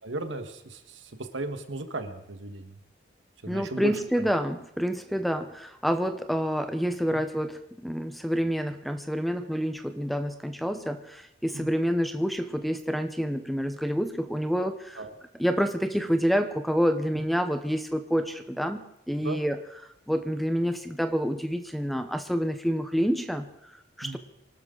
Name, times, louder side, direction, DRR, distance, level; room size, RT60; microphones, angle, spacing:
voice 1, 0.0-2.8 3.4-4.3 7.1-7.2 11.5-11.8 14.9-15.1 17.1-17.3 19.2-19.4 24.0-24.2, right 2 dB, 90° right, 7 dB, 1.6 m, -36 dB
voice 2, 3.5-15.0 15.4-19.6 20.1-24.2, equal, ahead, 8 dB, 0.8 m, -28 dB
24.0 x 12.5 x 3.9 m, 0.81 s
head